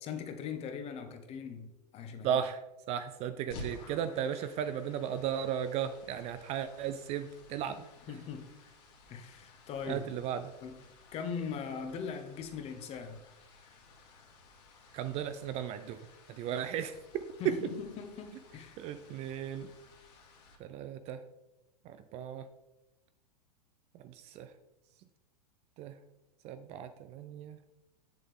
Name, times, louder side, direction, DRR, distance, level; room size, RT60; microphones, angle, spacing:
voice 1, 0.0-2.4 8.1-8.5 9.1-10.1 10.6-10.8 11.1-13.2 17.4-18.8, left 6 dB, 30° left, 7 dB, 1.1 m, -40 dB
voice 2, 2.2-2.6 2.9-7.8 9.9-10.5 14.9-16.0 16.3-17.0 17.4-17.5 18.8-19.7 20.6-21.2 21.9-22.5 24.0-24.5 25.8-25.9 26.4-27.7, right 9 dB, 30° right, 10 dB, 0.5 m, -35 dB
sound 1, 3.5-20.5, left 2 dB, 45° left, 2.2 m, -54 dB
8.5 x 7.1 x 3.6 m, 0.97 s
figure-of-eight pair, 95°, 21 cm